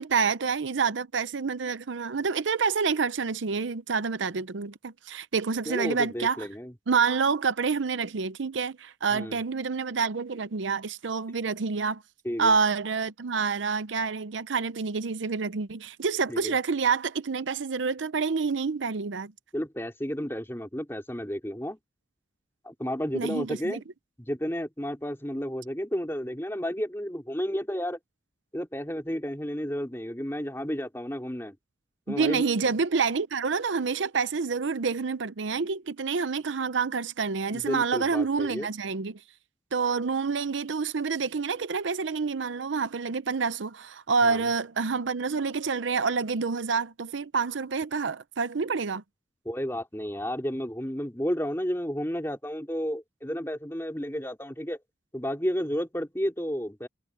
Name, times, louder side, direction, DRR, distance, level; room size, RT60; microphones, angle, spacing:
voice 1, 0.0-6.5 6.9-12.0 12.4-19.3 23.1-23.8 32.1-39.2 39.7-49.0, right 5 dB, 85° right, 0.7 m, -28 dB
voice 2, 5.7-6.7 9.1-9.4 12.2-12.5 16.3-16.6 19.5-21.8 22.6-23.8 24.2-28.0 28.5-31.6 32.1-32.4 37.5-38.7 44.2-44.5 49.5-54.8 55.1-56.9, equal, 15° left, 3.7 m, -32 dB
head